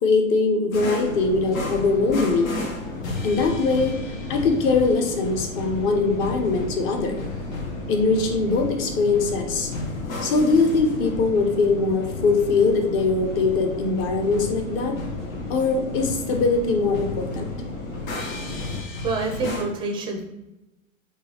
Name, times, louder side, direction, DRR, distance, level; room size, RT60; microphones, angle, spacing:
voice 1, 0.0-2.6 3.2-4.0 4.3-7.2 7.9-9.7 10.2-15.0 15.5-17.5, left 3 dB, 35° left, 4 dB, 0.7 m, -22 dB
sound 1, 0.7-19.7, left 2 dB, 75° left, 0.9 m, -35 dB
sound 2, 1.0-18.8, left 2 dB, 60° left, 1.2 m, -35 dB
voice 2, 19.0-20.2, right 3 dB, 15° right, 2 dB, 0.4 m, -27 dB
3.8 x 2.7 x 2.8 m, 0.96 s
hypercardioid pair, 110°, 40 cm